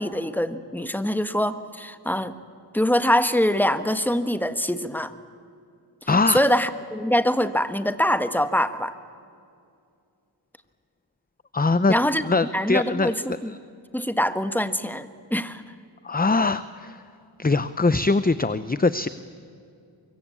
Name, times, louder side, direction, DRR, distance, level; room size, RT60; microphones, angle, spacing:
voice 1, 0.0-2.3 2.7-5.1 6.3-8.9 11.9-12.2 12.5-13.5 13.9-15.6, equal, 5° left, 11 dB, 1.4 m, -24 dB
voice 2, 6.1-6.4 11.5-11.9 12.2-13.6 16.0-17.0 17.4-19.1, left 3 dB, 20° left, 14 dB, 0.7 m, -22 dB
24.5 x 22.5 x 8.6 m, 2.4 s
wide cardioid pair, 45°, 46 cm